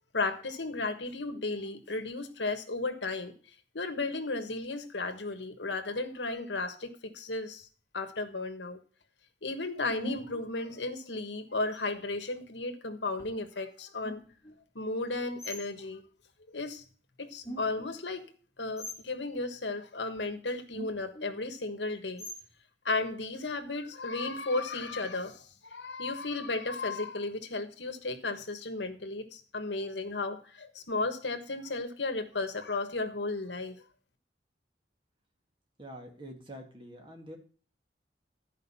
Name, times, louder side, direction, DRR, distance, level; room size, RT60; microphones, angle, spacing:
voice 1, 0.1-3.3 3.7-7.7 7.9-8.8 9.4-14.2 14.7-16.0 16.5-16.8 17.2-18.3 18.6-22.3 22.8-33.8, left 3 dB, 85° left, 8 dB, 1.4 m, -34 dB
sound 1, 7.6-7.7 10.0-10.5 11.7-12.2 13.2-13.4 14.0-14.5 15.4-15.6 17.4-17.9 18.8-19.1 20.2-20.3 20.7-21.4 22.2-22.6, equal, 15° left, 1.7 m, -42 dB
voice 2, 35.8-37.4, equal, 30° right, 2 dB, 2.1 m, -46 dB
13.0 x 5.3 x 5.5 m, 0.41 s
head